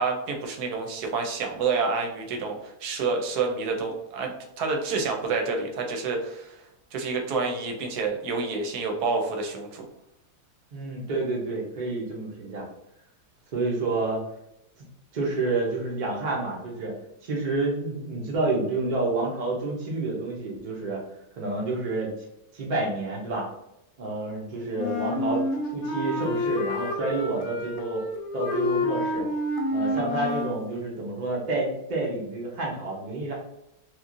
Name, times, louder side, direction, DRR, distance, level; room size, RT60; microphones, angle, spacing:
voice 1, 0.0-6.6 6.9-9.8, right 4 dB, 80° right, 3 dB, 1.1 m, -28 dB
voice 2, 10.7-12.7 13.5-14.2 15.1-16.9 17.2-21.0 21.3-22.1 22.5-23.5 24.0-25.5 25.7-28.0 28.3-29.3 29.7-33.3, right 3 dB, 45° right, -2 dB, 0.6 m, -29 dB
Wind instrument woodwind instrument, 24.8-30.6, left 1 dB, 70° left, 1.0 m, -28 dB
3.0 x 2.5 x 2.4 m, 0.84 s
omnidirectional pair, 1.7 m